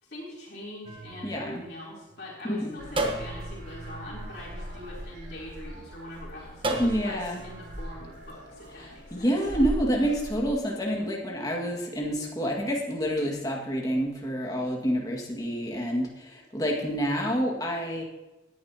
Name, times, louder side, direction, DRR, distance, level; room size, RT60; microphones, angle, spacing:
voice 1, 0.0-9.3, left 1 dB, 55° left, -5 dB, 3.6 m, -43 dB
sound 1, 0.8-2.3 3.0-5.5 6.6-8.0, right 2 dB, 25° right, 1.2 m, -35 dB
voice 2, 1.2-1.6 2.4-2.8 6.8-7.4 8.8-18.0, equal, 20° left, -1 dB, 2.0 m, -28 dB
sound 2, 2.8-10.5, equal, 60° right, 4.4 m, -40 dB
18.5 x 10.5 x 2.9 m, 1.0 s
head